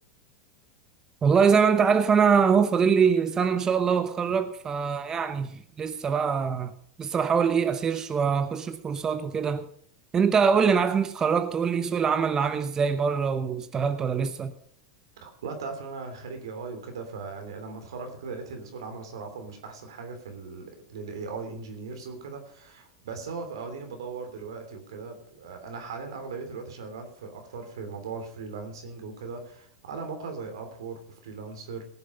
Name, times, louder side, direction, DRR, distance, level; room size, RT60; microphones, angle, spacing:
voice 1, 1.2-6.7 7.0-9.7 10.1-14.5, right 6 dB, 25° right, 0.9 m, -23 dB
voice 2, 15.2-31.8, right 4 dB, 85° right, 3.1 m, -38 dB
18.5 x 7.3 x 5.4 m
hypercardioid pair, 115°, 2 cm